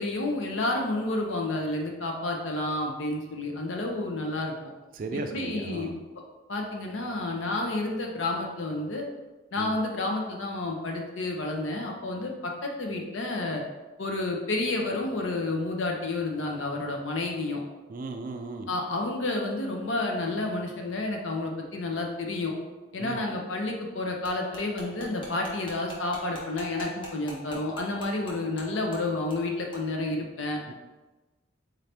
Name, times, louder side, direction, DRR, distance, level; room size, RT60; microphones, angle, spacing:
voice 1, 0.0-4.5 5.1-5.9 6.5-9.0 9.5-13.6 14.0-17.6 18.7-22.5 22.9-30.6, left 2 dB, 80° left, 1 dB, 0.7 m, -30 dB
voice 2, 5.0-6.0 9.6-9.7 17.9-18.7 23.0-23.2 30.7-30.8, right 2 dB, 45° right, 5 dB, 0.3 m, -36 dB
sound 1, 24.2-28.6 28.9-29.0 29.3-29.4 29.7-29.8, equal, 25° left, 0.8 m, -43 dB
3.9 x 2.8 x 3.3 m, 1.2 s
head